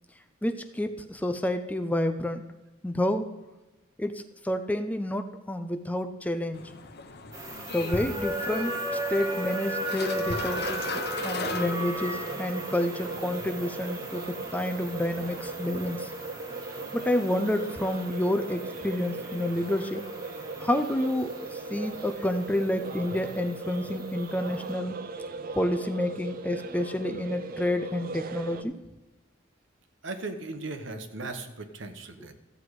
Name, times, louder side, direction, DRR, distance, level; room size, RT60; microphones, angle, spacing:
voice 1, 0.4-2.4 2.8-3.4 4.0-6.6 7.7-16.1 16.9-20.1 20.6-25.0 25.6-28.7, left 1 dB, 5° left, 8 dB, 0.4 m, -29 dB
sound 1, 6.5-12.3, left 4 dB, 50° left, 0.8 m, -37 dB
sound 2, 7.3-24.7, right 1 dB, 15° right, 1.5 m, -37 dB
sound 3, 10.4-28.6, right 3 dB, 45° right, 0.6 m, -38 dB
voice 2, 30.0-32.3, right 3 dB, 70° right, 7 dB, 1.1 m, -37 dB
14.0 x 8.0 x 4.8 m, 1.1 s
head